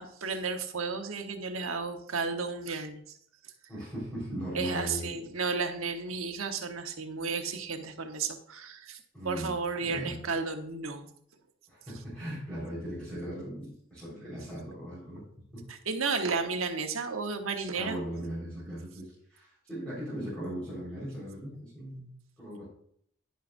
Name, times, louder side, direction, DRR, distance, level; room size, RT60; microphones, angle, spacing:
voice 1, 0.0-3.0 4.5-9.0 9.2-11.1 15.7-18.0, right 4 dB, 90° right, 5 dB, 1.2 m, -33 dB
voice 2, 3.7-5.2 9.1-9.5 9.8-10.2 11.7-15.2 15.5-15.6 17.8-22.6, equal, 5° left, -9 dB, 4.6 m, -38 dB
11.0 x 10.5 x 2.6 m, 0.65 s
head